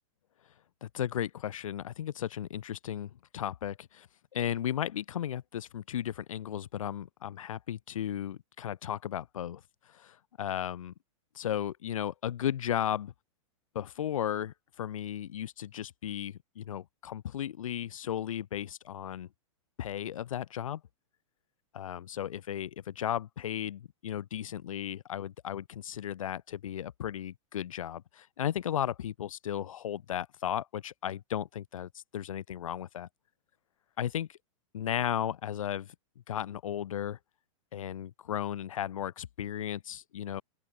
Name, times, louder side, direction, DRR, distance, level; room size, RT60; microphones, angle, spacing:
voice 1, 0.8-9.6 9.9-10.9 11.3-13.1 13.7-19.3 19.8-20.8 21.7-33.1 34.0-34.4 34.7-35.9 36.3-37.2 37.7-40.4, left 10 dB, 90° left, 2.4 m, -35 dB
open air
supercardioid pair, 160°, 17 cm